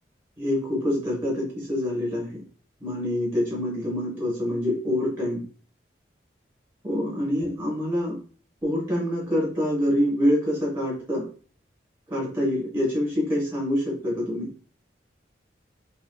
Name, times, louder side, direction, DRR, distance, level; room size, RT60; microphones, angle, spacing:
voice 1, 0.4-2.4 2.8-5.4 6.8-8.2 8.6-11.2 12.1-14.5, left 1 dB, 15° right, -5 dB, 1.4 m, -26 dB
2.9 x 2.9 x 2.3 m, 0.39 s
head